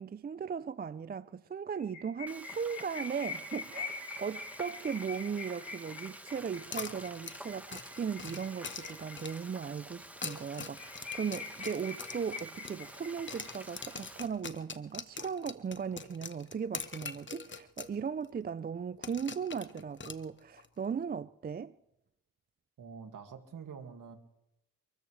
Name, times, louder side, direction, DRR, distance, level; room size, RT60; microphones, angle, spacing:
voice 1, 0.0-21.8, right 6 dB, 25° right, 0.5 m, -37 dB
sound 1, 1.7-9.6 10.0-10.1 10.4-10.5 10.7-13.8, left 4 dB, 50° left, 4.0 m, -44 dB
Frying (food), 2.3-14.3, right 1 dB, 5° right, 1.5 m, -50 dB
sound 2, 6.7-9.5 10.1-13.0 13.3-18.0 18.2-18.3 19.0-20.7, left 5 dB, 30° left, 1.3 m, -43 dB
voice 2, 22.8-24.2, right 6 dB, 60° right, 2.2 m, -46 dB
29.0 x 14.0 x 3.3 m
supercardioid pair, 55°, 36 cm